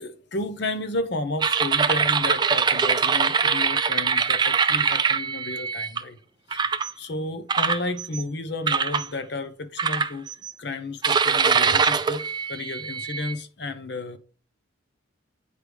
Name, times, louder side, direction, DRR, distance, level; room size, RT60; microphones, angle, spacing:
voice 1, 0.0-6.2 6.5-10.3 10.6-12.2 12.5-14.2, left 2 dB, 55° left, 0.9 m, -32 dB
sound 1, 1.4-6.0 6.5-6.9 7.5-8.2 8.7-9.1 9.8-10.5 11.0-13.4, right 5 dB, 20° right, 0.3 m, -23 dB
8.6 x 4.8 x 3.5 m
head